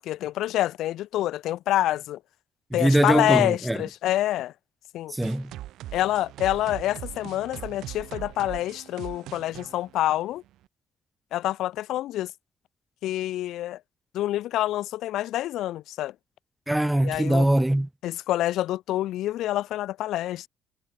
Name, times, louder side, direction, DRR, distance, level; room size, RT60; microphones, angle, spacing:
voice 1, 0.0-2.2 2.7-4.5 4.9-5.2 5.9-10.4 11.3-12.3 13.0-13.8 14.1-16.1 17.0-17.5 18.0-20.5, left 14 dB, 85° left, 0.5 m, -27 dB
voice 2, 2.7-3.8 5.1-5.5 16.7-17.9, right 1 dB, 10° right, 0.7 m, -22 dB
sound 1, 5.2-10.7, right 14 dB, 85° right, 1.2 m, -41 dB
cardioid pair, 90°, 0 cm